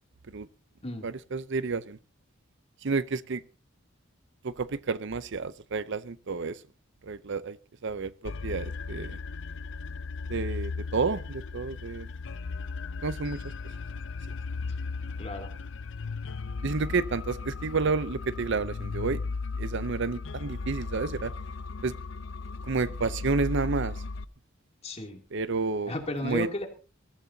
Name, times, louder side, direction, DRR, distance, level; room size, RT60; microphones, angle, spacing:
voice 1, 1.0-2.0 2.8-3.4 4.4-6.6 7.0-7.6 7.8-9.2 10.3-12.1 13.0-13.5 16.6-19.2 19.6-21.3 21.8-21.9 22.6-24.0 25.3-25.9 26.2-26.5, right 4 dB, 60° right, 0.6 m, -30 dB
sound 1, 8.2-24.2, left 4 dB, 65° left, 0.6 m, -36 dB
voice 2, 15.2-15.5 24.8-25.2 25.9-26.7, left 2 dB, 30° left, 2.8 m, -34 dB
21.5 x 14.5 x 2.8 m
head